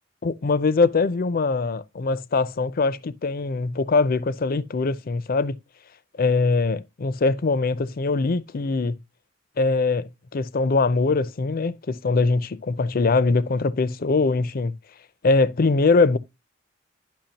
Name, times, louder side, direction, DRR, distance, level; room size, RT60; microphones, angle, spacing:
voice 1, 0.2-5.6 6.2-9.0 9.6-14.7 15.2-16.2, left 3 dB, 50° left, 0.5 m, -22 dB
10.5 x 5.7 x 2.8 m
head